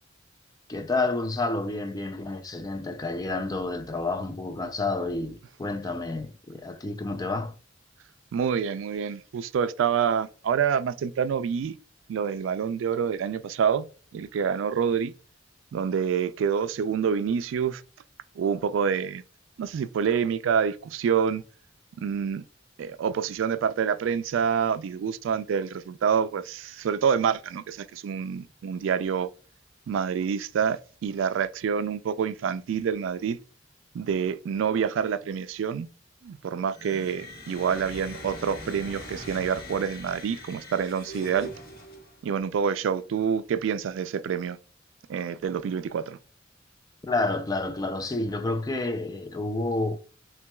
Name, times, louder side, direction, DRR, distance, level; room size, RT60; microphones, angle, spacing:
voice 1, 0.7-7.5 47.1-50.0, left 2 dB, 20° left, 0.4 m, -29 dB
voice 2, 8.3-11.8 12.1-13.9 14.1-15.1 15.7-17.8 18.4-19.2 19.6-21.4 22.0-22.4 22.8-29.3 29.9-33.4 33.9-35.9 36.2-41.5 42.2-44.6 45.1-46.2, right 7 dB, 75° right, 0.3 m, -27 dB
sound 1, 36.7-42.3, equal, 50° left, 1.0 m, -42 dB
5.8 x 2.2 x 2.2 m
head